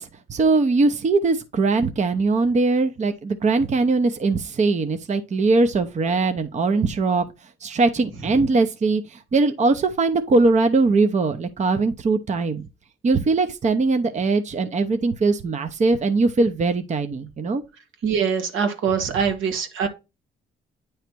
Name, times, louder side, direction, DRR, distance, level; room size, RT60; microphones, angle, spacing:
voice 1, 0.0-7.2 7.6-12.6 13.0-17.6, right 3 dB, 35° right, 0.8 m, -21 dB
voice 2, 18.0-19.9, right 6 dB, 85° right, 1.7 m, -23 dB
9.2 x 3.2 x 4.5 m
cardioid pair, 90°, 20 cm